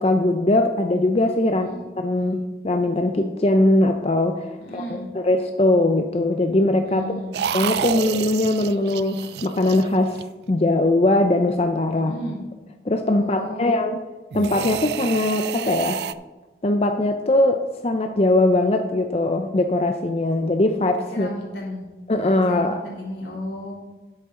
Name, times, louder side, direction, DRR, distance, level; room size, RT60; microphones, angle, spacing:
voice 1, 0.0-1.7 2.0-7.0 7.5-10.2 10.5-12.1 12.8-14.0 14.3-16.0 16.6-21.3 22.1-22.8, left 2 dB, 35° left, 6 dB, 0.5 m, -21 dB
voice 2, 4.6-5.1 6.8-7.3 11.9-12.4 13.1-13.8 21.1-21.8 22.5-23.7, equal, 85° left, -2 dB, 3.1 m, -34 dB
sound 1, 7.3-10.5 14.3-16.1, right 8 dB, 70° right, 0.3 m, -29 dB
11.0 x 8.2 x 3.7 m, 1.2 s
head